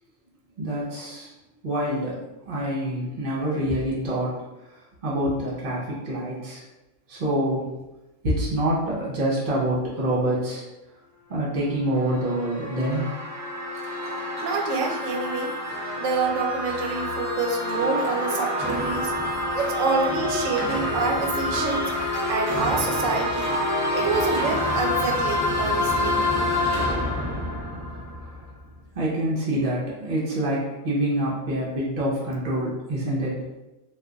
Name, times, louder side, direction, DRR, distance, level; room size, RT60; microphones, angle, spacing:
voice 1, 0.6-1.3 1.6-2.2 2.5-6.6 7.1-7.7 8.2-10.6 11.3-13.1 28.9-33.4, right 1 dB, 50° right, -6 dB, 0.7 m, -26 dB
sound 1, 11.7-28.7, left 1 dB, 30° right, 0.3 m, -27 dB
voice 2, 14.4-15.5 16.0-19.1 19.5-23.6 23.9-26.2, right 4 dB, 85° right, 3 dB, 0.9 m, -27 dB
2.4 x 2.3 x 3.8 m, 1.0 s
omnidirectional pair, 1.3 m